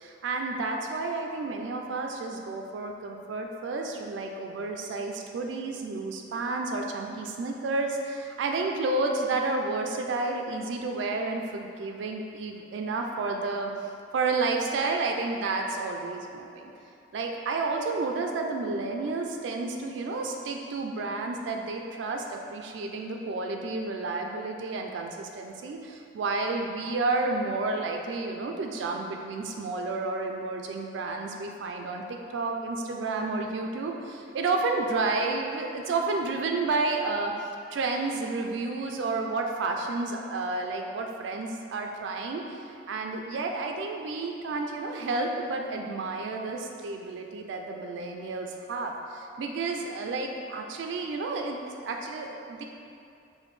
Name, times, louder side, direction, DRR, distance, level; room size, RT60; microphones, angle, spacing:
voice 1, 0.0-16.7 17.1-52.6, right 3 dB, 80° right, 2 dB, 0.3 m, -31 dB
5.0 x 2.2 x 3.1 m, 2.6 s
head